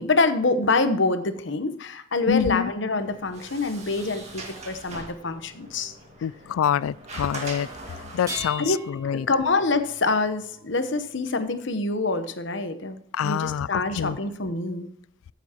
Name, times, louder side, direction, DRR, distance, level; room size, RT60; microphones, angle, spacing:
voice 1, 0.0-5.9 8.6-8.9 9.1-13.0 13.2-14.9, left 3 dB, 65° left, 1.0 m, -25 dB
voice 2, 2.3-2.7 6.2-7.7 8.1-9.3 13.1-14.2, left 8 dB, 90° left, 0.3 m, -26 dB
Sliding door, 3.0-8.6, right 2 dB, 35° right, 2.1 m, -41 dB
sound 1, 8.2-11.4 12.9-13.0 13.9-14.0, left 1 dB, 15° right, 3.0 m, -40 dB
14.0 x 7.1 x 3.0 m
head